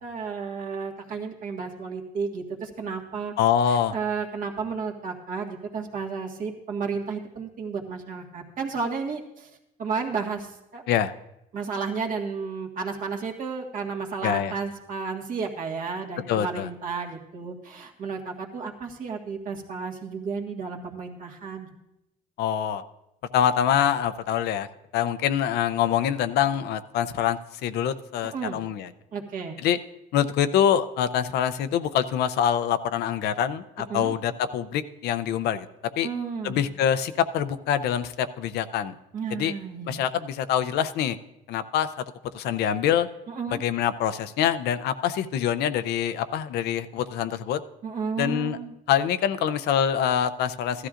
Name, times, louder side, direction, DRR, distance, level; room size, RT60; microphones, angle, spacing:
voice 1, 0.0-3.3 3.7-9.5 9.8-10.8 11.5-21.7 28.3-28.6 29.1-29.6 33.9-34.1 36.0-36.6 39.1-40.0 43.3-43.6 47.8-48.7, right 5 dB, 55° right, 1 dB, 1.7 m, -32 dB
voice 2, 3.4-3.9 10.9-11.1 14.2-14.5 16.3-16.7 22.4-22.8 23.3-24.7 24.9-28.9 29.6-29.8 30.1-35.7 36.0-36.1 36.4-38.9 39.3-39.5 39.8-41.2 41.5-41.9 42.3-43.1 43.5-47.6 48.2-48.6 48.9-50.9, left 9 dB, 75° left, 11 dB, 0.6 m, -25 dB
15.5 x 12.5 x 2.5 m, 0.86 s
cardioid pair, 110°, 17 cm